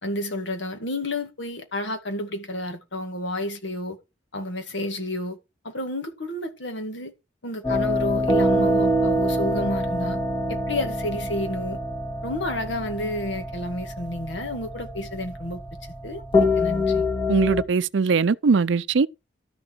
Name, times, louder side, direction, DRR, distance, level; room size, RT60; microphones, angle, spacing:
voice 1, 0.0-4.0 4.3-5.4 5.6-7.1 7.4-10.2 10.5-11.8 12.2-15.6 16.0-17.1, left 1 dB, 70° left, 2.2 m, -30 dB
sound 1, 7.6-17.6, left 1 dB, 25° left, 2.3 m, -25 dB
voice 2, 17.3-19.1, right 4 dB, 75° right, 0.5 m, -20 dB
12.5 x 6.7 x 4.6 m
head